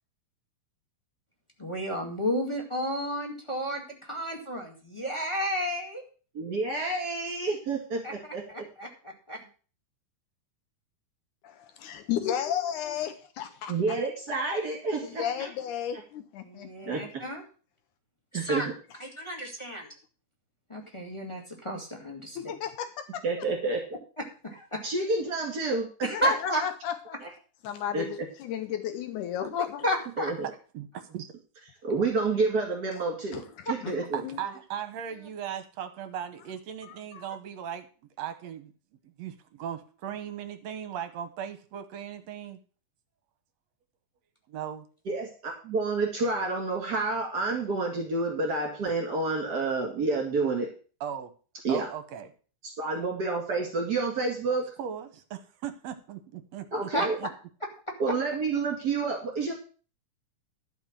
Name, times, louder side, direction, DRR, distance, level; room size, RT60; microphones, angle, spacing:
voice 1, 1.6-6.0 8.0-9.4 16.4-17.4 18.3-18.7 19.0-19.9 20.7-22.5 24.2-24.8 26.0-26.6 29.8-30.3 33.6-34.1 34.4-34.6 35.1-35.3 56.9-57.1 57.6-57.9, equal, 10° left, 1.5 m, -32 dB
voice 2, 6.4-8.0 8.3-8.4 13.7-15.5 16.9-17.0 18.3-18.6 23.2-23.8 24.8-25.9 26.2-26.3 27.9-28.1 31.8-33.4 33.7-34.2 45.1-50.7 51.6-51.9 52.8-54.7 56.7-57.1 58.0-59.5, right 3 dB, 35° right, 2.2 m, -29 dB
voice 3, 11.8-14.0 15.0-16.9 22.5-23.2 26.1-26.2 26.6-26.9 27.7-29.8 33.3-33.4 34.2-34.4 36.8-37.3, left 9 dB, 75° left, 2.1 m, -33 dB
voice 4, 34.1-37.9 38.2-38.7 39.2-42.6 44.5-44.9 51.0-51.3 51.7-52.3 54.5-56.9, right 9 dB, 65° right, 1.9 m, -38 dB
12.0 x 5.2 x 7.3 m
omnidirectional pair, 3.8 m